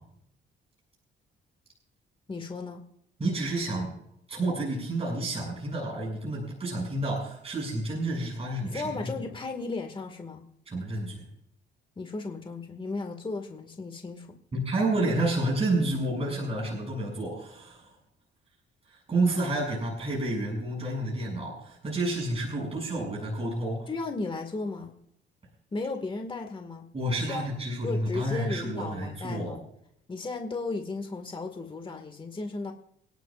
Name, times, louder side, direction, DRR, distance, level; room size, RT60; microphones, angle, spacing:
voice 1, 2.3-2.9 8.6-10.4 12.0-14.4 23.9-25.0 25.7-26.9 27.2-27.4 27.8-29.6 30.1-32.7, left 3 dB, 25° left, 4 dB, 1.9 m, -35 dB
voice 2, 3.2-3.9 4.3-9.1 10.7-11.2 14.5-17.9 18.9-23.9 26.9-29.5, right 2 dB, 30° right, -1 dB, 6.9 m, -30 dB
29.0 x 11.5 x 2.5 m, 0.72 s
cardioid pair, 90°, 20 cm